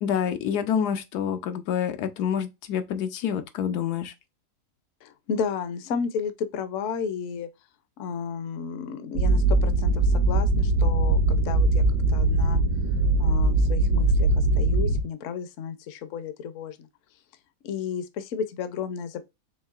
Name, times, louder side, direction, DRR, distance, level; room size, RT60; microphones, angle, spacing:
voice 1, 0.0-4.1, left 8 dB, 90° left, 1.2 m, -27 dB
voice 2, 5.0-7.5 8.0-11.8 12.1-12.6 13.2-14.3 14.6-16.8 17.6-19.3, left 6 dB, 65° left, 0.9 m, -32 dB
sound 1, 9.2-15.0, right 2 dB, 75° right, 1.0 m, -21 dB
4.6 x 3.1 x 2.3 m
omnidirectional pair, 1.7 m